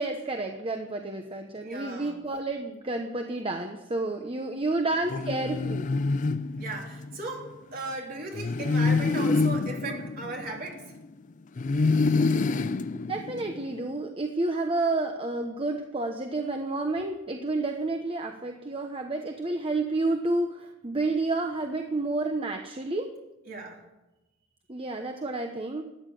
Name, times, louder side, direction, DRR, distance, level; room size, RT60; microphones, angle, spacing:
voice 1, 0.0-5.9 9.9-10.0 12.3-12.4 13.1-23.1 24.7-25.8, right 2 dB, 30° right, 4 dB, 1.0 m, -30 dB
voice 2, 1.6-2.2 6.6-10.8 23.5-23.8, right 2 dB, 45° right, -1 dB, 3.4 m, -37 dB
sound 1, 5.1-7.2 8.3-11.1 11.6-13.8, left 3 dB, 40° left, 0.4 m, -27 dB
13.5 x 9.8 x 7.6 m, 0.99 s
head